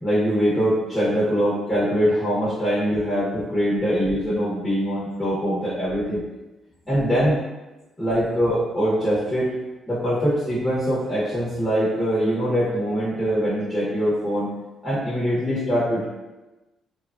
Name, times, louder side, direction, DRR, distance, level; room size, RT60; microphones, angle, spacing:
voice 1, 0.0-6.2 6.9-7.4 8.0-9.5 9.9-14.5 14.8-16.1, equal, 20° left, -8 dB, 1.0 m, -23 dB
3.1 x 2.2 x 2.5 m, 1.1 s
cardioid pair, 90°, 0 cm